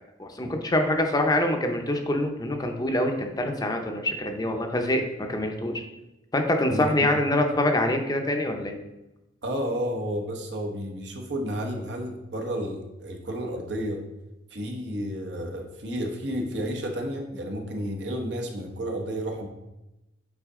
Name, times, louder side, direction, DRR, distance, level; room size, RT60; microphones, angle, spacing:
voice 1, 0.2-5.8 6.3-8.7, left 1 dB, 20° left, 4 dB, 0.7 m, -25 dB
voice 2, 6.7-7.2 9.4-14.0 14.5-19.5, equal, 65° right, 2 dB, 1.1 m, -31 dB
8.2 x 3.9 x 3.7 m, 0.97 s
head